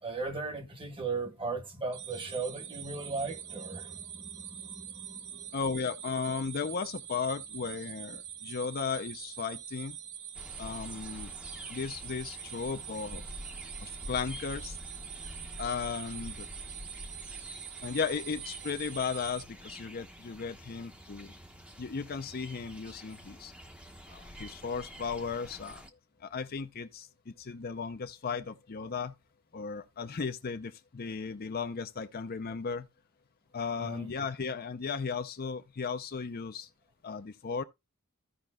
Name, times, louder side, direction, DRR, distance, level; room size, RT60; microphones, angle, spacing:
voice 1, 0.0-5.6 8.4-8.6 33.8-34.1, right 4 dB, 25° right, 1.2 m, -37 dB
sound 1, 1.9-19.4, right 9 dB, 60° right, 0.8 m, -44 dB
voice 2, 5.5-10.0 10.6-11.3 11.7-13.2 13.8-14.8 15.6-16.5 17.8-21.3 21.8-23.5 24.1-25.9 26.2-29.1 29.5-32.9 33.5-36.7 37.0-37.6, left 5 dB, 45° left, 0.6 m, -35 dB
sound 2, 10.3-25.9, equal, 5° right, 0.8 m, -47 dB
15.0 x 5.1 x 2.2 m
head